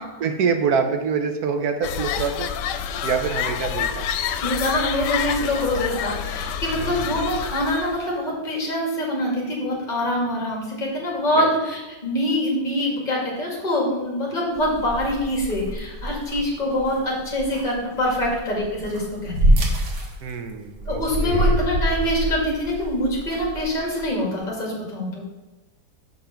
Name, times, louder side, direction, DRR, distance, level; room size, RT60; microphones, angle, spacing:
voice 1, 0.2-2.5 3.0-4.1 6.7-7.4 11.3-11.5 20.2-21.7 22.0-22.1, right 6 dB, 65° right, 6 dB, 1.3 m, -26 dB
sound 1, 1.8-8.1, left 8 dB, 85° left, 1.2 m, -28 dB
voice 2, 4.4-19.6 20.9-25.3, left 1 dB, 25° left, -3 dB, 2.3 m, -25 dB
sound 2, 14.5-24.4, right 1 dB, 80° right, 1.9 m, -26 dB
6.4 x 5.3 x 5.8 m, 1.2 s
omnidirectional pair, 1.8 m